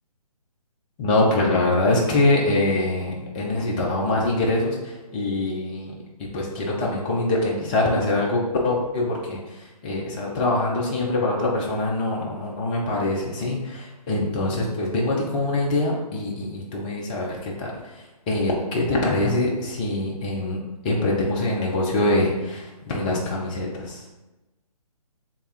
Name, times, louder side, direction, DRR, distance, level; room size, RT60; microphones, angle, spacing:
voice 1, 1.0-4.8 5.1-5.9 6.3-9.4 9.8-17.8 18.3-20.6 20.8-24.0, left 2 dB, 15° left, -2 dB, 0.4 m, -24 dB
3.3 x 2.3 x 4.3 m, 1.1 s
figure-of-eight pair, 140°, 20 cm